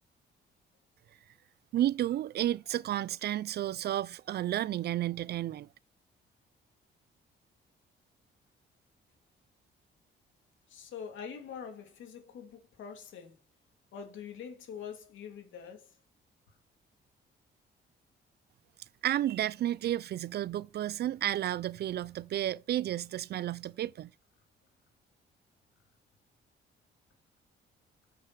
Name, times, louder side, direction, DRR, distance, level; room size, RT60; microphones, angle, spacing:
voice 1, 1.7-5.7 19.0-24.1, right 12 dB, 55° right, 0.4 m, -32 dB
voice 2, 10.7-13.4 13.9-15.9, left 7 dB, 75° left, 2.7 m, -44 dB
6.7 x 6.6 x 6.0 m
cardioid pair, 90°, 20 cm